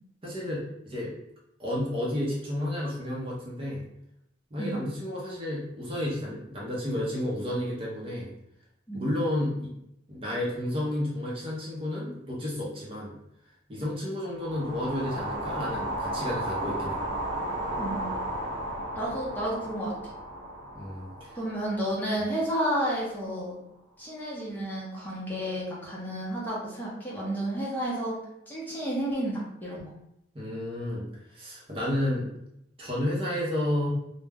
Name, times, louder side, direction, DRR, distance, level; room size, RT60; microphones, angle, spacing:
voice 1, 0.2-1.1 1.6-3.8 4.5-8.3 8.9-9.7 10.1-13.1 13.7-17.0 20.7-21.4 30.3-32.3 32.8-33.9, left 1 dB, 30° right, -5 dB, 0.6 m, -31 dB
sound 1, 14.3-22.6, right 1 dB, 85° right, 0.7 m, -34 dB
voice 2, 17.8-18.1 18.9-19.9 21.3-23.6 24.0-28.2 28.5-29.9, right 1 dB, 10° left, -6 dB, 0.6 m, -31 dB
2.2 x 2.0 x 3.4 m, 0.80 s
head